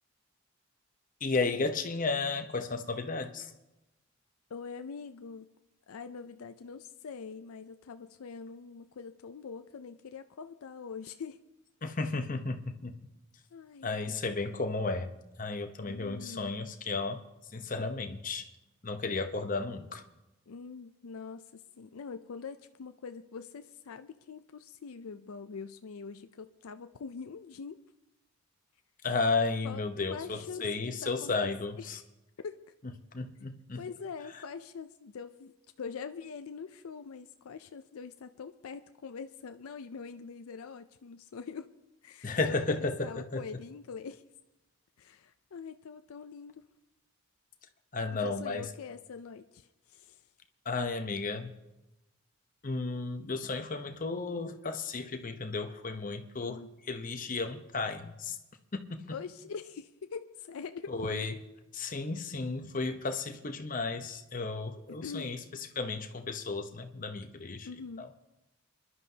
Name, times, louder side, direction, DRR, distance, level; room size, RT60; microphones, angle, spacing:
voice 1, 1.2-3.5 11.8-12.9 13.8-17.2 17.5-18.5 18.8-20.0 29.0-32.0 33.1-33.8 42.2-43.5 47.9-48.7 50.6-51.5 52.6-58.4 58.9-59.0 60.9-61.3 61.7-65.4 65.8-67.7 68.0-68.1, left 3 dB, 35° left, 7 dB, 0.8 m, -33 dB
voice 2, 4.5-5.5 5.9-11.4 13.5-14.2 15.8-16.5 20.5-27.8 29.6-29.8 30.1-31.5 31.8-32.0 32.4-32.7 33.8-41.7 42.0-44.2 45.0-46.6 48.1-50.2 56.4-56.7 59.1-61.1 64.9-65.3 67.6-68.1, left 5 dB, 75° left, 9 dB, 0.5 m, -44 dB
26.5 x 11.5 x 2.8 m, 0.98 s
head